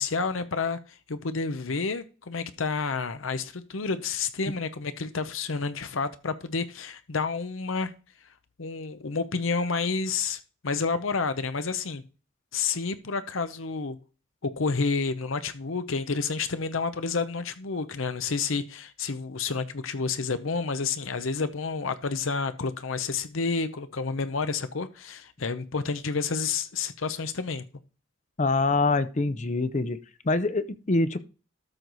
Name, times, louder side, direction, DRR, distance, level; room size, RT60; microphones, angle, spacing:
voice 1, 0.0-7.9 8.6-12.0 12.5-14.0 14.4-27.6, left 4 dB, 80° left, 0.8 m, -30 dB
voice 2, 28.4-30.0 30.2-31.2, left 3 dB, 35° left, 0.6 m, -25 dB
13.0 x 4.6 x 4.0 m
head